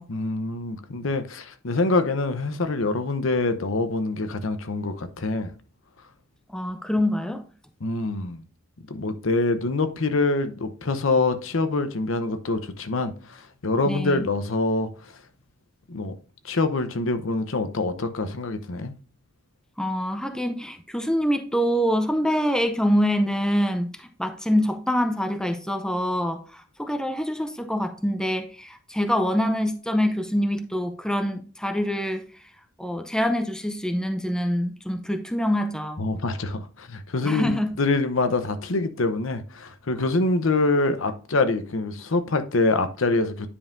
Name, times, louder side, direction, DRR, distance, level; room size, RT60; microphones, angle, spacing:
voice 1, 0.1-5.5 7.8-8.4 8.9-15.2 15.9-16.2 16.4-18.9 36.0-43.5, left 3 dB, 70° left, 0.8 m, -25 dB
voice 2, 6.5-7.5 13.8-14.3 19.8-32.2 32.8-36.0 37.2-37.8, equal, 5° left, 0.5 m, -25 dB
9.8 x 5.4 x 2.6 m
head